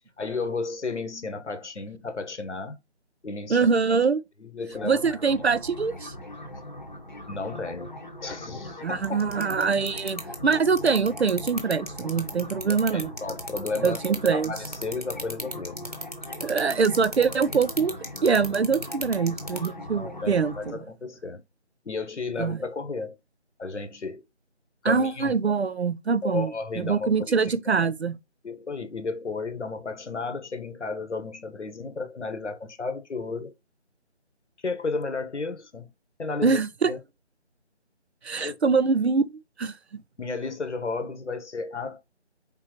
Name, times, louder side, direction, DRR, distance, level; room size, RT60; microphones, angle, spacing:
voice 1, 0.2-2.8 3.2-3.7 4.4-5.5 7.3-7.9 8.2-9.3 12.7-14.0 14.3-15.9 19.9-21.4 21.8-23.2 23.6-24.2 24.8-25.4 26.2-27.5 28.4-33.5 34.6-35.9 36.2-37.0 38.4-38.6 40.2-42.0, left 4 dB, 80° left, 1.1 m, -33 dB
voice 2, 3.5-4.2 4.8-6.1 8.8-13.1 13.8-14.5 16.4-17.9 18.2-20.8 22.4-22.6 24.8-26.5 26.8-28.1 36.4-36.9 38.2-40.0, right 5 dB, 65° right, 0.6 m, -24 dB
sound 1, 4.7-20.7, left 1 dB, 40° left, 0.9 m, -40 dB
sound 2, 9.0-19.7, equal, 35° right, 0.8 m, -34 dB
4.4 x 3.8 x 2.9 m
figure-of-eight pair, 180°, 35 cm